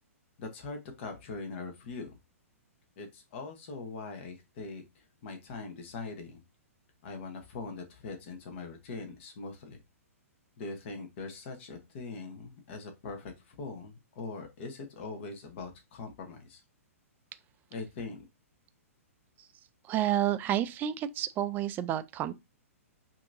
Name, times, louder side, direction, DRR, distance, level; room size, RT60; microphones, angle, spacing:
voice 1, 0.4-2.2 3.0-6.4 7.0-9.8 10.6-16.6 17.7-18.2, left 3 dB, 50° left, 1.1 m, -42 dB
voice 2, 19.9-22.3, right 12 dB, 25° right, 0.4 m, -30 dB
5.6 x 2.8 x 2.6 m
figure-of-eight pair, 115°, 8 cm